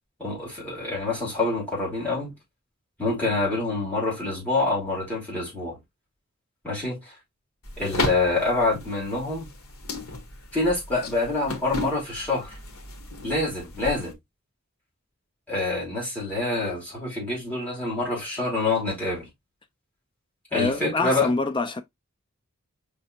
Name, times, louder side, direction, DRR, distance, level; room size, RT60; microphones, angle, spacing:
voice 1, 0.2-2.3 3.0-5.8 6.6-7.1 7.8-9.5 10.5-12.6 13.2-14.1 15.5-19.3 20.5-21.3, left 2 dB, 10° left, 3.0 m, -26 dB
sound 1, 7.6-14.1, left 3 dB, 85° left, 1.3 m, -34 dB
voice 2, 20.5-21.8, left 3 dB, 25° left, 0.4 m, -25 dB
5.3 x 3.3 x 2.7 m
head